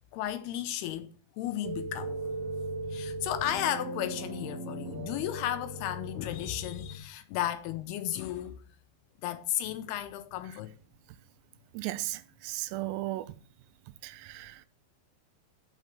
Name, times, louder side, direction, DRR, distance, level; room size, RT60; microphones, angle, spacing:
voice 1, 0.1-2.4 2.9-8.6 9.2-10.8, left 12 dB, 80° left, 2.6 m, -34 dB
sound 1, 1.6-7.0, right 2 dB, 5° right, 4.5 m, -38 dB
voice 2, 11.7-13.3 14.0-14.7, right 16 dB, 90° right, 2.8 m, -36 dB
6.7 x 6.2 x 7.4 m
omnidirectional pair, 4.8 m